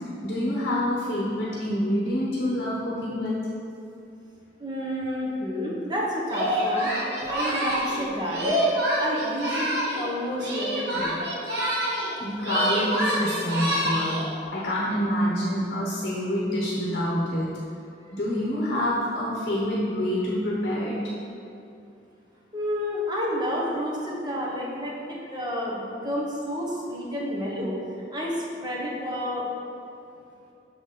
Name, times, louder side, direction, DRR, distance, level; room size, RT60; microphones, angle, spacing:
voice 1, 0.2-3.4 12.2-17.5 18.1-21.0, equal, 55° left, -5 dB, 0.9 m, -27 dB
voice 2, 4.6-8.6 9.0-11.2 22.5-27.8 28.1-29.5, equal, 25° right, -4 dB, 1.1 m, -30 dB
Singing, 6.3-10.1 10.4-12.1 12.4-14.3, right 1 dB, 60° right, 1.3 m, -27 dB
6.2 x 4.1 x 5.2 m, 2.7 s
head